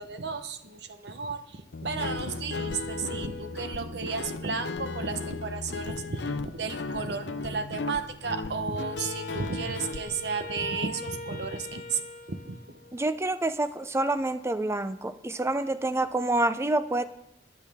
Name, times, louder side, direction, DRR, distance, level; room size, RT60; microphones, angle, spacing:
voice 1, 0.0-12.0 12.3-12.6, right 4 dB, 70° right, 9 dB, 0.9 m, -33 dB
Guitar, 1.7-10.0, left 3 dB, 90° left, 0.6 m, -36 dB
Wind instrument woodwind instrument, 8.8-13.2, left 2 dB, 50° left, 1.3 m, -42 dB
voice 2, 12.9-17.1, right 2 dB, 15° right, 12 dB, 0.5 m, -27 dB
22.5 x 8.3 x 3.6 m, 0.87 s
head